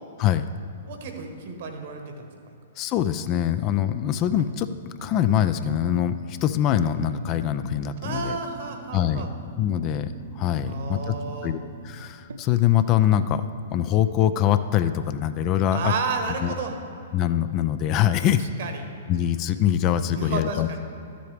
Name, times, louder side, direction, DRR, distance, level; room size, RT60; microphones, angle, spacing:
voice 1, 0.9-2.3 8.0-9.3 10.7-11.5 15.7-16.7 18.6-18.8 20.1-20.8, right 4 dB, 55° right, 5 dB, 1.2 m, -31 dB
voice 2, 2.8-4.7 5.0-8.4 8.9-9.3 9.6-11.2 11.4-15.9 16.4-16.5 17.1-18.4 19.1-20.8, left 10 dB, 35° left, 11 dB, 0.4 m, -23 dB
sound 1, 4.4-5.4 5.7-6.6 7.0-12.4, right 2 dB, 75° right, 0.6 m, -42 dB
12.5 x 7.6 x 3.4 m, 2.8 s
figure-of-eight pair, 115°, 0 cm